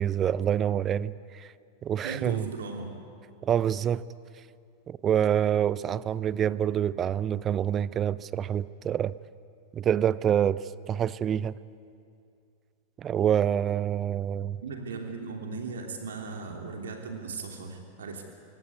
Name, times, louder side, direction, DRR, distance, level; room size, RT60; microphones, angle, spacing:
voice 1, 0.0-1.5 1.8-2.5 3.4-4.0 4.9-9.1 9.7-11.6 13.0-14.6, right 9 dB, 25° right, 0.7 m, -26 dB
voice 2, 2.0-3.0 14.6-18.2, right 4 dB, 65° right, 3.0 m, -37 dB
24.5 x 24.5 x 9.5 m
figure-of-eight pair, 90°, 0 cm